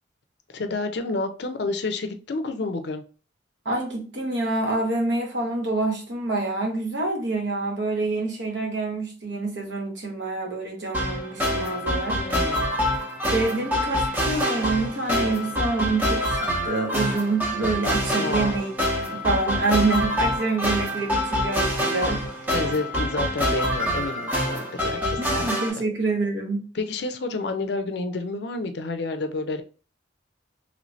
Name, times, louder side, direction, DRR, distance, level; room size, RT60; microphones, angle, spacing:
voice 1, 0.5-3.0 12.1-12.6 18.2-18.6 22.5-25.5 26.7-29.6, left 3 dB, 60° left, 8 dB, 0.5 m, -29 dB
voice 2, 3.6-12.2 13.3-18.7 19.1-22.2 25.2-26.7, right 3 dB, 70° right, 1 dB, 1.0 m, -26 dB
sound 1, 10.9-25.7, equal, 10° right, 0.7 m, -26 dB
3.1 x 3.0 x 2.6 m, 0.37 s
head